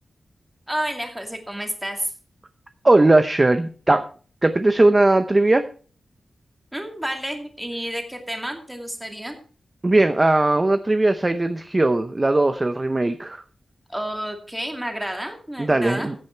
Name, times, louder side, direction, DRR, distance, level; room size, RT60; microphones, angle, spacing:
voice 1, 0.7-2.1 6.7-9.4 13.9-16.1, right 1 dB, 5° right, 3 dB, 2.5 m, -30 dB
voice 2, 2.8-4.1 4.4-5.6 9.8-13.4 15.6-16.1, right 2 dB, 20° right, 9 dB, 0.7 m, -18 dB
15.5 x 8.7 x 4.5 m, 0.41 s
wide cardioid pair, 160°, 0 cm